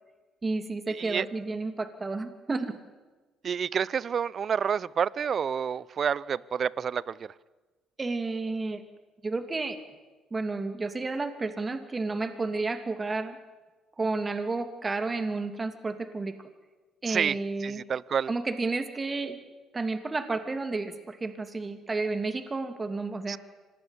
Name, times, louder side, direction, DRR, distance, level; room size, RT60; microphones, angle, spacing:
voice 1, 0.4-2.7 8.0-8.8 9.2-9.8 10.3-13.4 14.0-16.5 17.0-17.8 18.3-19.4 19.7-23.4, right 3 dB, 30° right, 2.7 m, -31 dB
voice 2, 3.4-7.1 17.1-17.4 17.6-18.3 23.3-23.4, right 7 dB, 50° right, 0.7 m, -28 dB
25.5 x 20.0 x 8.1 m
hypercardioid pair, 55°, 0 cm